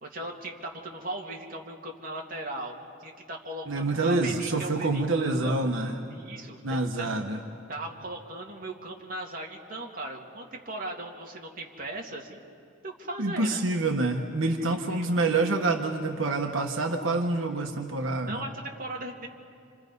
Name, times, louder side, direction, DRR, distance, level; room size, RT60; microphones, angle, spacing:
voice 1, 0.0-5.7 6.1-7.1 7.7-12.4 12.8-13.6 14.4-15.1 18.2-19.3, right 2 dB, 45° right, -1 dB, 2.5 m, -38 dB
voice 2, 3.7-6.0 6.6-7.4 13.2-18.4, right 2 dB, 85° right, 3 dB, 1.3 m, -27 dB
29.0 x 26.5 x 5.4 m, 2.4 s
head